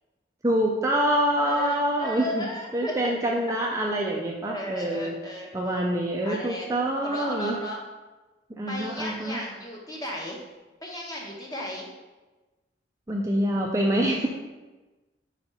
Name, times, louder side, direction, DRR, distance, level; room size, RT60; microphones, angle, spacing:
voice 1, 0.4-5.2 5.5-7.5 8.6-9.4 13.1-14.3, right 1 dB, 15° right, -1 dB, 0.5 m, -26 dB
voice 2, 1.4-3.0 4.5-5.5 6.2-6.7 7.0-7.8 8.7-10.4 10.8-11.9, left 1 dB, 20° left, -2 dB, 1.1 m, -35 dB
4.9 x 4.4 x 5.4 m, 1.2 s
head